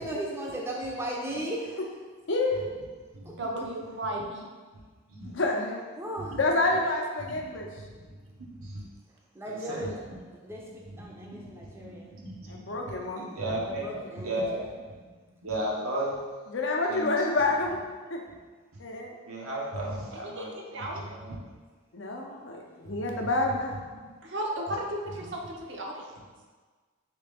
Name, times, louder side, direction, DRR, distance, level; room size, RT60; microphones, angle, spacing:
voice 1, 0.0-1.8 3.6-3.7 6.0-6.4 9.3-12.1 13.8-14.6, right 1 dB, 10° right, -3 dB, 0.5 m, -36 dB
voice 2, 2.3-2.6 5.3-5.8 6.4-7.7 12.5-13.3 16.5-17.8 18.1-18.2 18.8-19.1 21.9-23.8, left 2 dB, 60° left, 1 dB, 0.6 m, -28 dB
voice 3, 3.4-4.5 20.4-20.5 20.7-21.0 24.2-26.1, right 1 dB, 55° right, 0 dB, 0.6 m, -34 dB
voice 4, 7.2-8.8 9.5-9.9 10.8-15.1 15.4-16.2 16.9-17.2 18.3-18.4 19.3-21.4 22.8-24.0 25.1-25.3, right 1 dB, 90° right, -3 dB, 0.9 m, -36 dB
4.1 x 3.2 x 3.4 m, 1.4 s
head